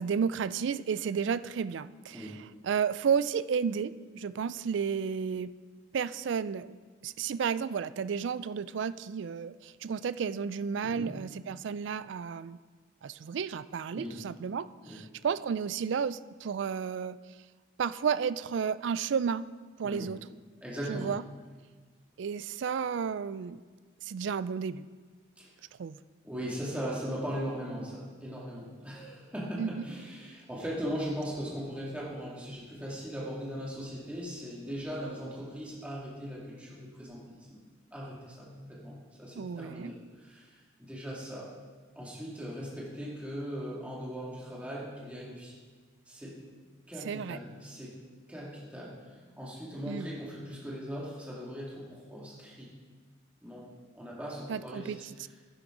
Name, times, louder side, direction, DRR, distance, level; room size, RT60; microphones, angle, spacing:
voice 1, 0.0-5.5 5.9-6.8 7.0-12.6 13.0-17.2 17.8-19.5 19.8-20.2 20.9-21.2 22.2-23.6 24.0-24.9 25.8-26.0 29.6-29.8 39.3-39.9 47.0-47.4 49.9-50.1 54.5-55.0, right 6 dB, 70° right, 16 dB, 0.3 m, -32 dB
voice 2, 2.1-2.4 10.8-11.1 13.9-14.2 14.8-15.0 19.8-20.1 20.6-21.1 25.4-25.5 26.2-37.6 37.9-41.5 41.9-45.5 46.1-46.4 46.9-48.0 48.3-52.7 53.4-53.7 53.9-54.9, equal, 5° right, -6 dB, 2.2 m, -39 dB
11.0 x 10.5 x 3.8 m, 1.5 s
head